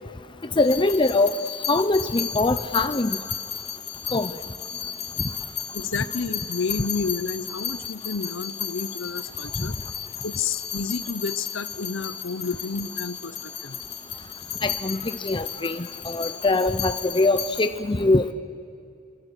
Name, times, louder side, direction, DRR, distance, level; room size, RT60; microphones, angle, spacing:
sound 1, 0.6-17.7, left 9 dB, 50° left, 3.2 m, -34 dB
voice 1, 0.6-1.3 1.7-3.2 4.1-4.3 9.6-9.7 14.6-18.3, left 2 dB, 25° left, 10 dB, 0.6 m, -22 dB
voice 2, 5.7-9.8 10.2-13.8, left 5 dB, 65° left, 13 dB, 0.8 m, -30 dB
28.0 x 24.5 x 8.2 m, 2.5 s
head